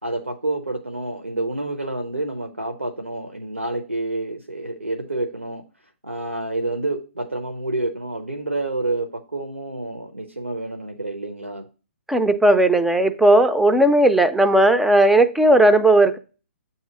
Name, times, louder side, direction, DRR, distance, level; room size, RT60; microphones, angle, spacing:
voice 1, 0.0-5.6 6.0-11.6, right 2 dB, 85° right, 0.6 m, -28 dB
voice 2, 12.1-16.2, right 1 dB, 5° right, 0.3 m, -16 dB
8.0 x 2.8 x 4.8 m
figure-of-eight pair, 125°, 7 cm